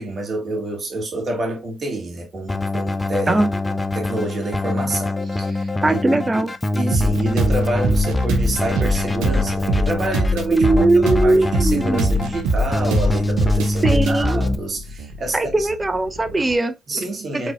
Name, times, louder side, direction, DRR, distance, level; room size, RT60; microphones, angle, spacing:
voice 1, 0.0-3.4 3.7-6.4 6.7-15.7 16.9-17.5, right 2 dB, 50° right, 2.5 m, -28 dB
Keyboard (musical), 2.5-14.6, left 2 dB, 20° left, 0.8 m, -24 dB
voice 2, 5.8-6.5 10.5-12.0 13.8-14.4 15.3-16.7 17.3-17.5, right 2 dB, 25° right, 1.0 m, -19 dB
sound 1, 6.9-16.5, right 1 dB, 80° right, 0.9 m, -23 dB
4.7 x 3.9 x 2.5 m
hypercardioid pair, 50°, 0 cm